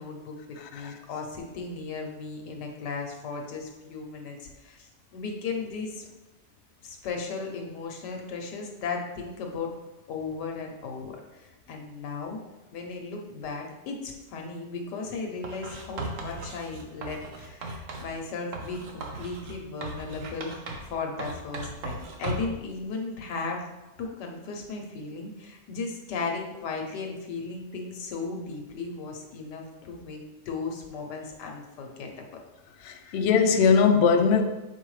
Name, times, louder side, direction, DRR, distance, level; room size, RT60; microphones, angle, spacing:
voice 1, 0.0-6.0 6.8-9.7 10.1-12.4 12.7-23.6 24.0-32.1 33.0-33.2, left 4 dB, 90° left, 1.5 m, -36 dB
voice 2, 0.6-1.0 32.8-34.4, left 6 dB, 65° left, 0.7 m, -21 dB
Writing, 15.4-18.1 18.5-20.9 21.2-22.6, right 2 dB, 55° right, 1.1 m, -37 dB
7.0 x 4.6 x 3.2 m
omnidirectional pair, 1.8 m